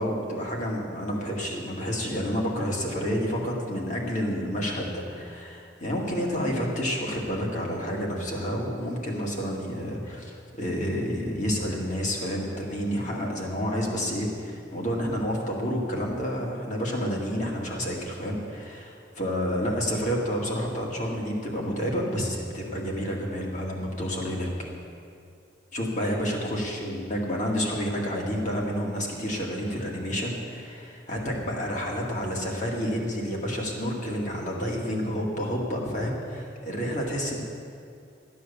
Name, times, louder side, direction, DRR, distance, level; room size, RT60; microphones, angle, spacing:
voice 1, 0.0-24.7 25.7-37.4, equal, 40° left, -2 dB, 2.2 m, -29 dB
13.5 x 9.5 x 7.0 m, 2.4 s
head